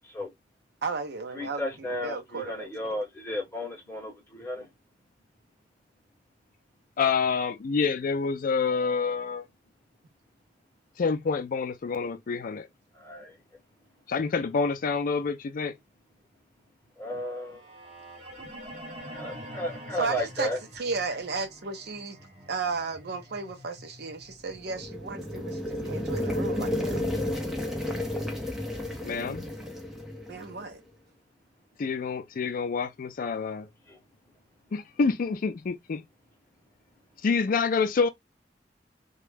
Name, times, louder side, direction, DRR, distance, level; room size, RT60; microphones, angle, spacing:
voice 1, 0.8-1.6 2.0-3.0 20.0-20.5 20.8-22.2 22.5-26.9 30.3-30.8, right 4 dB, 65° right, 0.6 m, -34 dB
voice 2, 1.3-4.7 12.9-13.4 17.0-17.6 19.1-20.6 33.9-34.0, left 1 dB, 15° left, 1.0 m, -34 dB
voice 3, 7.0-9.5 11.0-12.7 14.1-15.8 29.0-29.5 31.8-33.7 34.7-36.0 37.2-38.1, left 5 dB, 50° left, 0.4 m, -27 dB
sound 1, 17.3-25.4, equal, 30° right, 0.8 m, -46 dB
sound 2, 24.6-30.6, left 1 dB, 5° right, 0.6 m, -32 dB
2.2 x 2.0 x 3.1 m
head